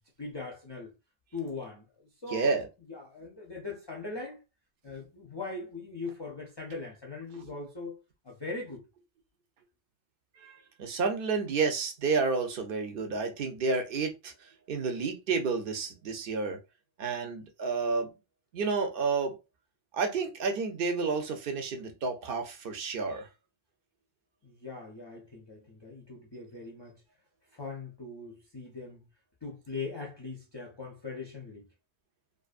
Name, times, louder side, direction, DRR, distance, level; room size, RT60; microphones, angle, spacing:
voice 1, 0.2-0.9 1.3-4.4 4.8-8.8 24.4-27.0 27.5-29.0 29.4-31.7, left 3 dB, 35° left, 0.4 m, -41 dB
voice 2, 2.3-2.7 7.4-7.5 10.4-16.6 17.0-18.1 18.5-19.4 19.9-23.3, right 4 dB, 60° right, 0.8 m, -30 dB
2.5 x 2.4 x 2.4 m
omnidirectional pair, 1.1 m